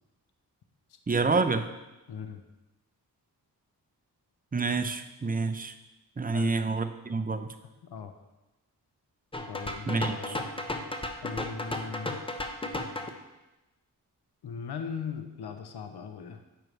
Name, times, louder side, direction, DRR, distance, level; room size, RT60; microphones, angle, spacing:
voice 1, 1.1-1.6 4.5-5.7 6.2-7.5 9.9-10.3, right 4 dB, 20° right, 8 dB, 0.6 m, -28 dB
voice 2, 2.1-2.4 6.3-6.5 7.8-8.1 9.5-10.4 11.2-12.2 14.4-16.4, left 6 dB, 70° left, 7 dB, 0.8 m, -39 dB
sound 1, 9.3-13.1, left 1 dB, 15° left, 0.8 m, -34 dB
8.9 x 6.6 x 3.3 m, 1.0 s
cardioid pair, 55°, 40 cm